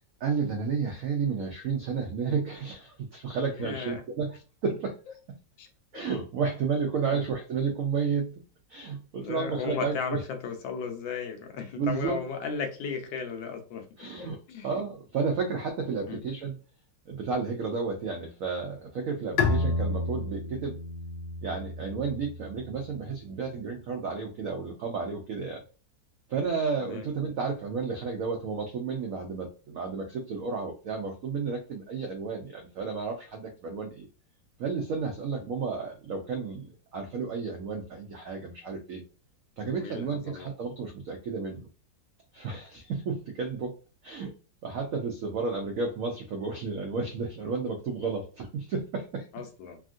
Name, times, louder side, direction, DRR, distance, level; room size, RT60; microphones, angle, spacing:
voice 1, 0.2-4.4 4.6-5.0 5.9-8.4 8.7-10.2 11.7-12.2 14.0-14.4 14.6-16.5 17.1-20.8 21.4-25.6 26.3-34.1 34.6-39.0 39.6-41.7 42.3-43.8 44.0-44.3 44.6-49.3, right 5 dB, 90° right, 3 dB, 0.7 m, -32 dB
voice 2, 3.5-4.0 5.6-5.7 7.0-7.2 9.2-14.7 16.1-16.2 26.8-27.1 39.7-40.5 49.3-49.8, left 6 dB, 90° left, 5 dB, 1.4 m, -36 dB
Bowed string instrument, 19.4-22.8, left 3 dB, 70° left, 1.0 m, -30 dB
3.4 x 2.3 x 2.5 m, 0.35 s
omnidirectional pair, 2.0 m